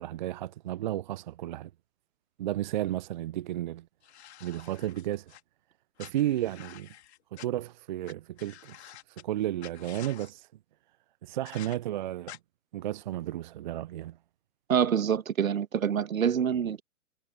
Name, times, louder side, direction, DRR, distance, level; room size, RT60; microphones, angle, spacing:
voice 1, 0.0-1.7 2.4-3.9 4.4-5.4 6.0-6.9 7.3-10.5 11.2-12.4 12.7-14.2, right 13 dB, 35° right, 0.6 m, -33 dB
sound 1, 4.0-5.4 6.0-7.5 8.0-8.1 8.4-9.2 9.6-10.3 11.5-11.8 12.3-12.4, left 12 dB, 50° left, 3.0 m, -49 dB
voice 2, 14.7-16.8, right 8 dB, 70° right, 1.5 m, -26 dB
figure-of-eight pair, 125°, 43 cm